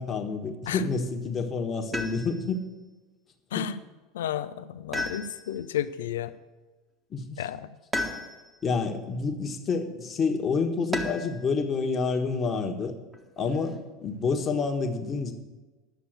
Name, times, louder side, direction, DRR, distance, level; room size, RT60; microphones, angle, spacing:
voice 1, 0.0-2.6 3.5-3.7 7.1-7.5 8.6-13.0 13.4-15.3, left 4 dB, 30° left, 3 dB, 1.4 m, -28 dB
sound 1, 1.9-2.6 4.9-5.7 7.9-8.6 10.9-11.4 13.1-13.8, left 1 dB, 15° right, 1.5 m, -34 dB
voice 2, 4.1-6.3 7.4-7.7, left 10 dB, 75° left, 13 dB, 0.5 m, -32 dB
10.5 x 6.8 x 7.9 m, 1.2 s
hypercardioid pair, 80°, 0 cm